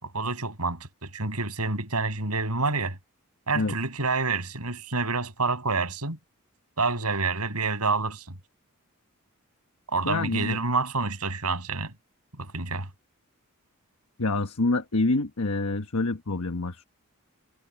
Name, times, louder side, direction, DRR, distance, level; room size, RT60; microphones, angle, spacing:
voice 1, 0.0-3.0 3.5-6.2 6.8-8.2 9.9-11.9 12.4-12.9, right 3 dB, 90° right, 6.6 m, -28 dB
voice 2, 10.1-10.6 14.2-16.9, left 3 dB, 75° left, 1.2 m, -26 dB
head